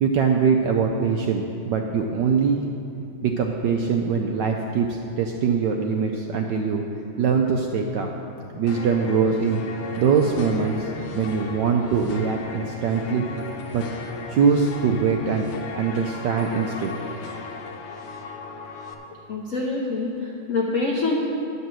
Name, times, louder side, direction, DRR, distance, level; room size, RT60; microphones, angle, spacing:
voice 1, 0.0-2.6 3.2-6.8 7.2-8.1 8.6-9.6 10.0-13.3 13.7-13.8 14.3-15.5 15.8-17.1, right 6 dB, 75° right, 2 dB, 1.0 m, -22 dB
sound 1, 8.7-18.9, left 4 dB, 80° left, 1.7 m, -36 dB
voice 2, 19.3-21.2, left 3 dB, 65° left, -3 dB, 0.8 m, -25 dB
9.5 x 5.6 x 7.5 m, 2.7 s
omnidirectional pair, 2.4 m